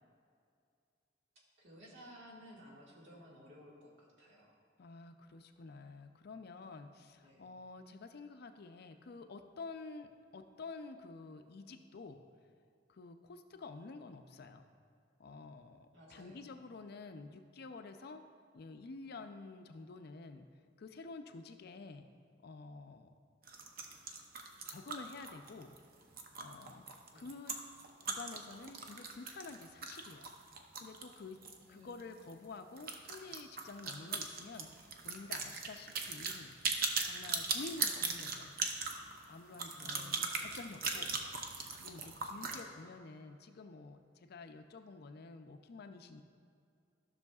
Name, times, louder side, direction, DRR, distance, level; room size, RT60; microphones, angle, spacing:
voice 1, 1.3-4.6 7.2-7.5 15.9-16.6 27.1-27.2 31.6-32.0 39.8-40.1 42.4-42.8, equal, 75° right, -4 dB, 1.8 m, -56 dB
voice 2, 4.8-12.2 12.9-14.7 15.2-18.2 18.5-20.5 20.8-22.1 22.4-23.1 24.7-25.8 26.4-26.8 27.1-27.6 28.0-30.3 30.8-31.4 31.7-36.5 37.0-38.5 39.3-41.2 41.8-46.2, left 3 dB, 55° left, 7 dB, 0.5 m, -50 dB
sound 1, 23.4-31.6 31.9-32.0 32.3-32.4 32.8-42.6, right 4 dB, 50° right, 0.7 m, -39 dB
13.0 x 6.3 x 2.3 m, 2.4 s
head